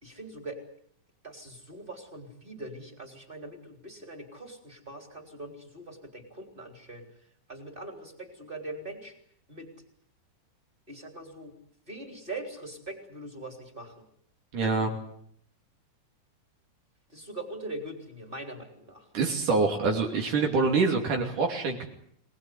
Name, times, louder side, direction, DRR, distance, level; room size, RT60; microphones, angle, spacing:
voice 1, 0.0-0.6 1.2-7.0 7.5-9.1 9.5-9.7 10.9-11.5 11.9-13.9 14.6-14.9 17.1-19.0, right 2 dB, 15° right, 4 dB, 4.1 m, -42 dB
voice 2, 14.5-14.9 19.1-21.9, right 4 dB, 70° right, 2 dB, 4.3 m, -25 dB
25.5 x 19.5 x 9.6 m, 0.67 s
omnidirectional pair, 3.8 m